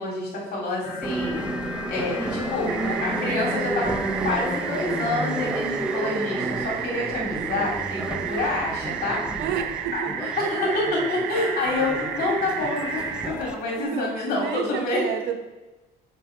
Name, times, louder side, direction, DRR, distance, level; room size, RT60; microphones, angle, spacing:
voice 1, 0.0-9.2 9.9-15.0, left 2 dB, 65° left, -2 dB, 2.5 m, -28 dB
sound 1, 0.8-5.9 6.2-7.2 8.6-13.8, left 3 dB, 45° left, 2.0 m, -38 dB
Subway metro underground, 1.0-13.5, right 2 dB, 5° right, 0.7 m, -32 dB
sound 2, 2.7-13.3, right 11 dB, 70° right, 0.4 m, -32 dB
voice 2, 9.4-10.3 13.8-15.4, right 8 dB, 85° right, 7 dB, 0.8 m, -31 dB
6.1 x 5.5 x 4.3 m, 1.1 s
cardioid pair, 110°, 17 cm